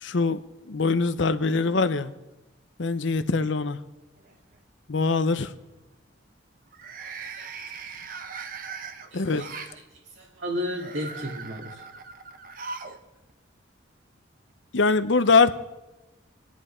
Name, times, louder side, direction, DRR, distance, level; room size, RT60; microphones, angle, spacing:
voice 1, 0.0-2.1 2.8-3.8 4.9-5.5 9.1-9.5 14.7-15.6, left 4 dB, 75° left, 12 dB, 0.8 m, -23 dB
sound 1, 3.2-3.8 4.2-4.6 6.7-9.8 10.6-13.0 13.3-13.4 14.5-14.6, right 5 dB, 45° right, 1.0 m, -40 dB
voice 2, 7.0-7.8 9.1-9.7 10.2-11.8, equal, 80° right, -2 dB, 2.1 m, -34 dB
26.5 x 10.5 x 4.4 m, 1.0 s
head